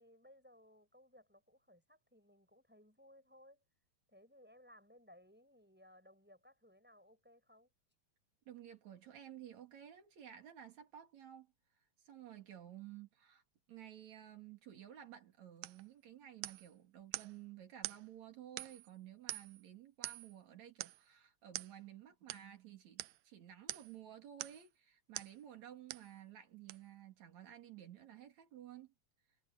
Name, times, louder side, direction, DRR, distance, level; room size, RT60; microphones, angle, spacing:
voice 1, 0.0-3.6 4.1-7.7, left 1 dB, 5° right, 5.5 m, -63 dB
voice 2, 8.5-11.5 12.1-13.4 13.7-28.9, right 11 dB, 60° right, 3.8 m, -54 dB
sound 1, 15.6-15.8 16.4-16.7 17.1-17.4 17.8-18.0 18.6-18.9 19.3-19.6 20.0-20.4 20.8-21.0 21.5-21.7 22.3-22.5 23.0-23.2 23.7-24.0 24.4-24.7 25.2-25.4 25.9-26.1 26.7-26.8, right 17 dB, 80° right, 1.7 m, -45 dB
omnidirectional pair, 3.8 m